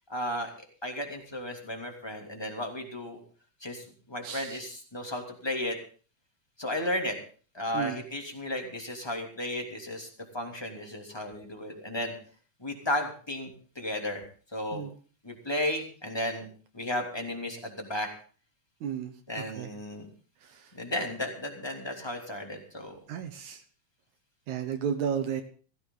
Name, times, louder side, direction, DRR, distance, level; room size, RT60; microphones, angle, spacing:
voice 1, 0.1-0.5 0.8-3.2 3.6-5.8 6.6-7.2 7.5-10.1 10.3-12.1 12.6-14.2 14.5-14.9 15.2-16.5 16.7-18.1 19.3-20.1 20.7-23.0, left 1 dB, 10° left, 2 dB, 2.5 m, -34 dB
voice 2, 23.1-23.6 24.5-25.4, right 8 dB, 75° right, 6 dB, 2.5 m, -32 dB
16.0 x 15.5 x 3.9 m, 0.40 s
omnidirectional pair, 3.4 m